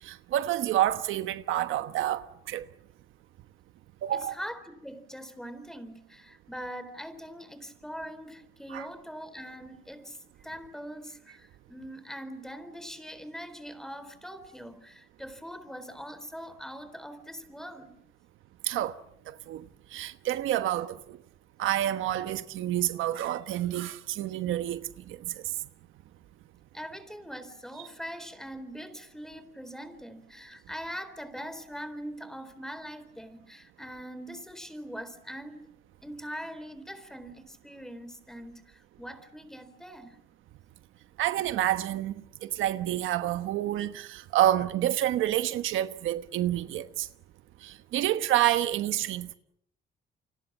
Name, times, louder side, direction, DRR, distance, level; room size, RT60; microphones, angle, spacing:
voice 1, 0.0-2.7 4.0-4.3 8.7-8.9 18.6-19.0 19.3-19.6 19.9-21.2 21.6-24.8 25.1-25.3 41.2-47.1 47.6-49.3, right 13 dB, 85° right, 1.2 m, -28 dB
voice 2, 4.1-18.0 26.7-35.6 36.0-40.2, equal, ahead, 4.0 m, -42 dB
29.0 x 25.0 x 7.4 m
cardioid pair, 90°, 20 cm